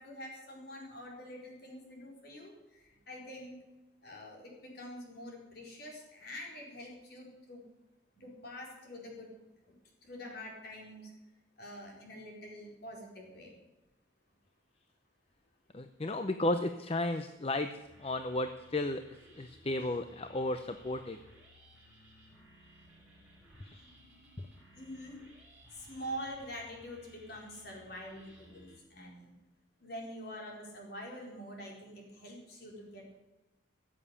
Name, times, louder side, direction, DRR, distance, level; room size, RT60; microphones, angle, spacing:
voice 1, 0.0-3.6 4.0-7.6 8.2-9.3 9.7-9.8 10.0-11.1 11.6-13.5 24.7-25.2 25.7-29.3 29.8-33.2, equal, 55° left, -1 dB, 4.4 m, -46 dB
voice 2, 15.7-17.7 18.0-19.0 19.4-21.2 23.6-23.8 24.4-24.5, left 2 dB, 30° left, 8 dB, 0.6 m, -34 dB
Dark synth loop, 17.9-28.8, equal, 5° right, 5.1 m, -59 dB
15.0 x 7.7 x 8.3 m, 1.1 s
head